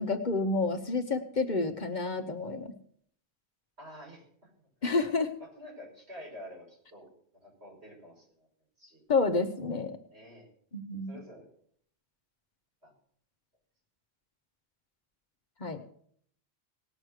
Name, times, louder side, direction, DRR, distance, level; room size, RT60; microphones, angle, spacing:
voice 1, 0.0-2.7 4.8-5.4 9.1-10.0 10.7-11.1 15.6-15.8, left 3 dB, 45° left, 7 dB, 1.0 m, -29 dB
voice 2, 3.8-4.7 5.4-7.1 7.4-8.5 8.8-9.0 10.1-10.5 11.1-11.5 12.8-12.9, equal, 75° right, -4 dB, 6.0 m, -49 dB
18.5 x 6.3 x 6.4 m, 0.63 s
omnidirectional pair, 1.1 m